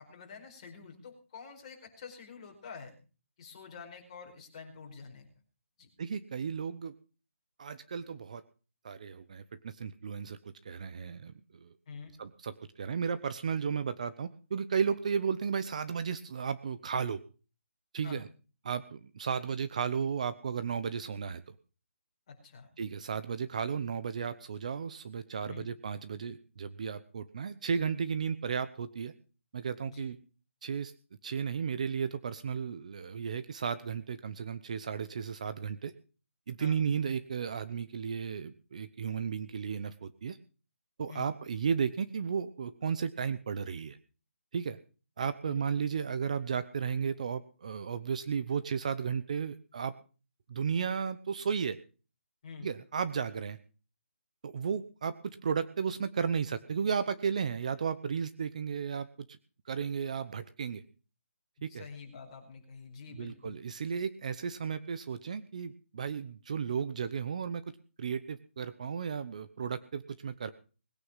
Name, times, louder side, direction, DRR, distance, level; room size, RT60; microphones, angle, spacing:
voice 1, 0.0-2.9 3.4-5.3 5.8-5.9 11.9-12.1 18.0-18.2 22.3-22.7 25.5-25.7 29.9-30.1 36.6-36.8 41.1-41.3 45.4-45.9 52.4-52.7 61.7-63.6, left 5 dB, 25° left, 2 dB, 4.7 m, -47 dB
voice 2, 6.0-6.9 7.6-8.4 8.8-11.7 12.2-17.2 17.9-18.3 18.6-21.6 22.8-29.1 29.5-30.2 30.6-30.9 31.2-35.9 36.5-40.4 41.0-44.0 44.5-44.8 45.2-49.9 50.5-51.8 52.6-53.6 54.4-55.1 55.4-59.1 59.7-60.8 61.6-61.8 63.1-67.6 68.0-70.5, right 6 dB, 30° right, 13 dB, 0.9 m, -34 dB
20.5 x 9.6 x 5.7 m, 0.37 s
hypercardioid pair, 175°, 7 cm